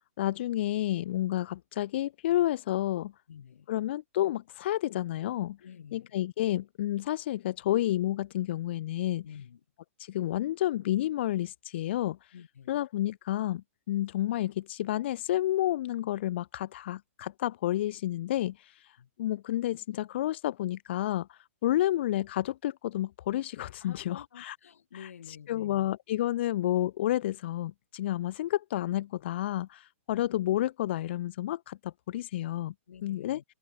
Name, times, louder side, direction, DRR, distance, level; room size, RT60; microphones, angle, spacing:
voice 1, 0.2-3.1 3.7-5.6 5.9-9.2 10.0-12.3 12.7-24.6 25.0-25.1 25.5-32.7 33.0-33.4, left 13 dB, 50° left, 0.5 m, -30 dB
voice 2, 3.3-3.7 5.6-6.2 9.2-9.6 12.3-12.8 19.0-19.1 23.8-25.9 32.9-33.4, left 8 dB, 75° left, 3.6 m, -49 dB
hypercardioid pair, 150°, 8 cm